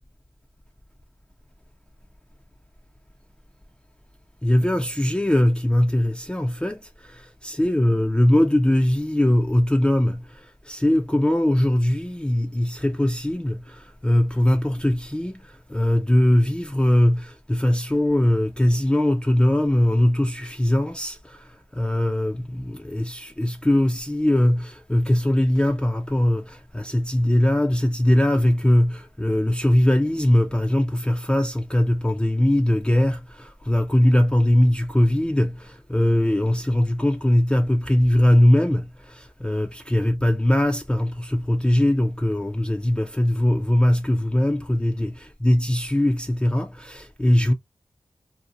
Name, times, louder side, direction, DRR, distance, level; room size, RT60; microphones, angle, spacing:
voice 1, 4.4-47.5, left 1 dB, 10° left, 0.4 m, -21 dB
2.7 x 2.1 x 2.5 m
cardioid pair, 40°, 10 cm